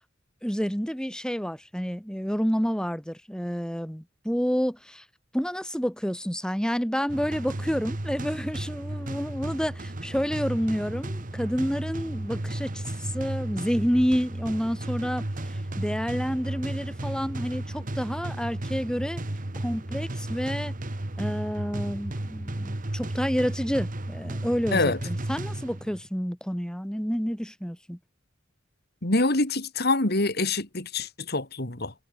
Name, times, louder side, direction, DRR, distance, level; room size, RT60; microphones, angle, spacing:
voice 1, 0.4-5.0 5.3-19.2 19.6-20.7 21.2-28.0, equal, 5° left, 7.2 m, -29 dB
sound 1, 7.1-26.1, right 1 dB, 45° right, 1.5 m, -34 dB
voice 2, 29.0-31.9, left 2 dB, 55° left, 3.3 m, -25 dB
head